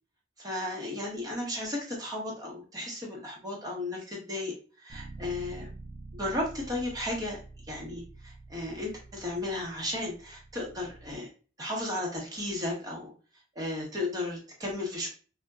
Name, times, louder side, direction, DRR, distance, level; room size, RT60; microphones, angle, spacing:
voice 1, 0.4-5.7 6.2-7.4 7.7-11.3 11.6-13.1 13.5-15.1, left 1 dB, 20° right, -2 dB, 0.8 m, -34 dB
Bass guitar, 4.9-11.1, right 2 dB, 55° right, 0.4 m, -47 dB
3.7 x 2.1 x 2.2 m, 0.37 s
head